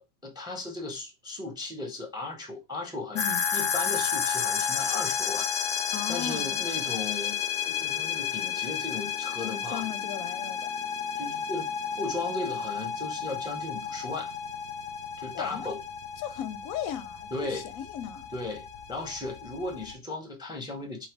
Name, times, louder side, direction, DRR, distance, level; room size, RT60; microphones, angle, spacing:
voice 1, 0.0-3.2 3.5-5.5 6.1-7.4 7.7-9.9 11.2-11.7 12.0-14.3 15.2-15.8 17.3-17.7 18.3-21.1, left 2 dB, 5° right, 0.6 m, -36 dB
sound 1, 3.2-19.9, left 7 dB, 65° left, 0.6 m, -32 dB
voice 2, 5.9-6.5 9.4-10.7 15.3-15.7 16.2-18.3, left 9 dB, 90° left, 1.0 m, -36 dB
3.2 x 2.9 x 4.4 m
omnidirectional pair, 1.4 m